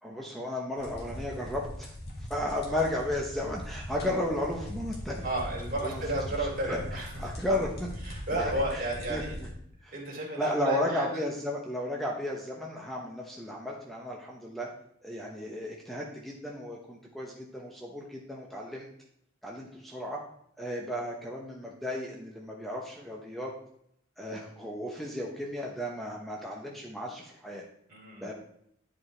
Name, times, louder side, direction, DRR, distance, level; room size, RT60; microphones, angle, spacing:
voice 1, 0.0-5.3 5.8-6.0 6.3-7.7 8.3-8.8 9.1-9.2 9.8-9.9 10.4-14.7 15.0-18.9 19.4-20.2 20.6-23.5 24.2-27.6 28.2-28.3, left 1 dB, ahead, -2 dB, 0.8 m, -34 dB
sound 1, 0.8-9.5, left 1 dB, 55° left, 1.9 m, -40 dB
voice 2, 5.2-7.1 8.1-9.4 9.9-11.1 27.9-28.3, right 1 dB, 45° right, -3 dB, 2.8 m, -32 dB
10.5 x 5.1 x 3.2 m, 0.70 s
head